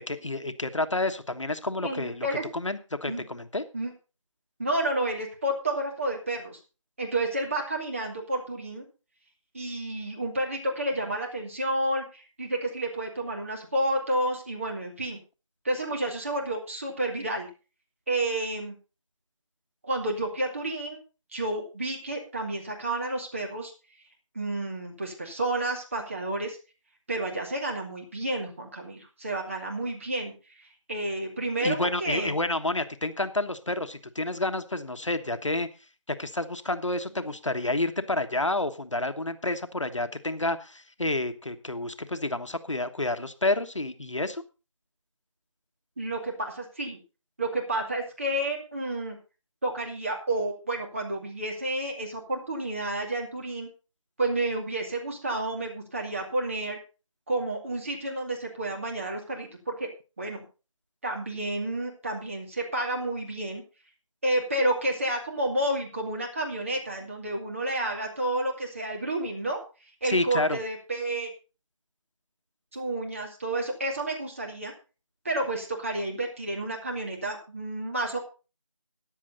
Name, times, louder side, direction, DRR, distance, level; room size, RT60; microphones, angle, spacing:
voice 1, 0.0-2.3 2.5-3.6 31.6-35.7 36.1-44.4 70.0-70.6, left 2 dB, 70° left, 9 dB, 1.4 m, -29 dB
voice 2, 1.8-2.4 3.1-3.2 3.7-3.9 4.6-6.6 7.0-8.8 9.5-15.2 15.6-17.5 18.1-18.7 19.8-21.0 21.3-23.7 24.3-26.6 27.1-30.3 30.9-32.3 46.0-47.0 47.4-49.2 49.6-53.7 54.2-56.8 57.3-59.9 60.2-60.4 61.0-63.6 64.2-69.6 70.0-71.3 72.7-74.7 75.2-78.2, right 1 dB, 25° right, 1 dB, 2.4 m, -30 dB
14.0 x 10.5 x 4.0 m, 0.32 s
figure-of-eight pair, 170°, 17 cm